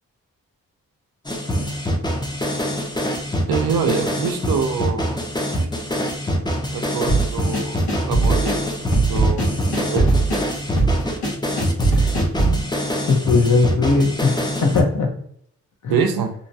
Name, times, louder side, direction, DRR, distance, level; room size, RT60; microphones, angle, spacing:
sound 1, 1.3-14.8, equal, 10° left, 0.6 m, -24 dB
voice 1, 3.5-5.2 6.7-10.1 15.9-16.3, right 6 dB, 75° right, 6 dB, 0.5 m, -25 dB
sound 2, 7.1-12.6, right 3 dB, 85° left, 1.0 m, -20 dB
voice 2, 13.1-15.1 15.8-16.0, left 4 dB, 55° left, 2 dB, 0.9 m, -19 dB
2.8 x 2.2 x 2.6 m, 0.67 s
cardioid pair, 50°, 36 cm